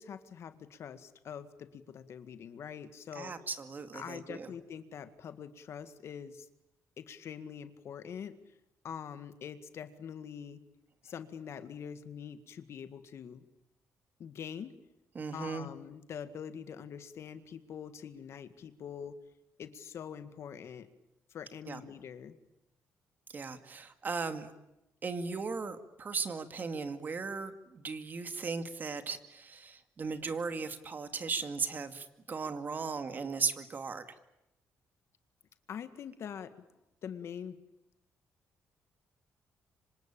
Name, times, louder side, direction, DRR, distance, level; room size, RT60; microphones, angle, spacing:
voice 1, 0.0-3.3 3.9-6.5 7.0-8.3 8.8-10.6 11.0-13.4 14.2-14.7 15.3-19.2 19.6-20.9 21.3-22.4 35.7-36.5 37.0-37.6, left 8 dB, 60° left, 11 dB, 1.9 m, -44 dB
voice 2, 3.1-4.5 15.1-15.7 21.7-21.8 23.3-24.5 25.0-34.1, right 4 dB, 35° right, 9 dB, 2.2 m, -37 dB
26.0 x 25.5 x 8.7 m, 0.89 s
cardioid pair, 120°, 5 cm